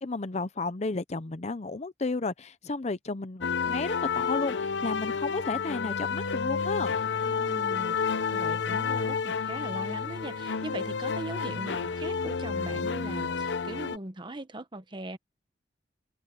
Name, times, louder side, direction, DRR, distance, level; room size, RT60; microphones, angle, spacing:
voice 1, 0.0-7.0, left 3 dB, 35° left, 0.7 m, -33 dB
sound 1, 3.4-14.0, left 5 dB, 75° left, 0.7 m, -30 dB
voice 2, 7.2-15.2, right 1 dB, 25° right, 1.1 m, -40 dB
head